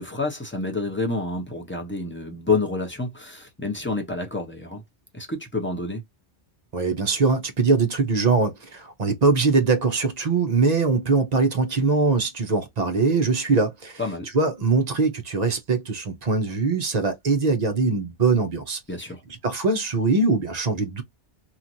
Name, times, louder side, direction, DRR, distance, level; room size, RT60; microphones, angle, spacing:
voice 1, 0.0-4.8 5.1-6.0 14.0-14.3 18.9-19.2, left 3 dB, 15° left, 0.5 m, -28 dB
voice 2, 6.7-14.0 14.3-18.8 19.4-21.0, right 4 dB, 45° right, 0.7 m, -22 dB
3.0 x 2.5 x 2.6 m
omnidirectional pair, 1.2 m